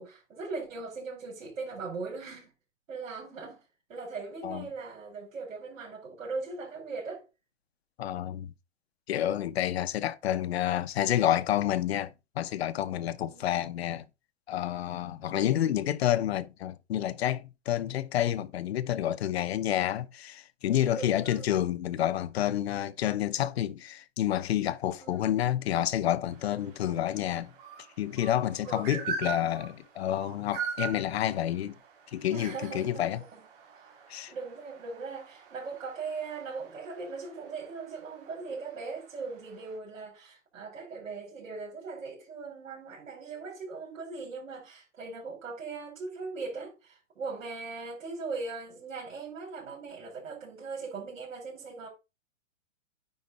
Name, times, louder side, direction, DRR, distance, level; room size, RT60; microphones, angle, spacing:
voice 1, 0.0-2.5 2.9-3.6 3.9-7.2 13.2-13.5 15.3-15.5 20.9-21.5 25.0-25.3 28.7-29.0 32.3-33.4 33.7-33.9 34.3-51.9, right 4 dB, 75° right, 4.9 m, -39 dB
voice 2, 8.0-8.5 9.1-14.1 14.5-27.5 28.0-31.8 32.1-33.2 34.1-34.3, left 11 dB, 50° left, 0.7 m, -29 dB
sound 1, 26.3-39.8, right 6 dB, 40° right, 3.0 m, -43 dB
9.6 x 4.1 x 4.1 m
hypercardioid pair, 160°, 39 cm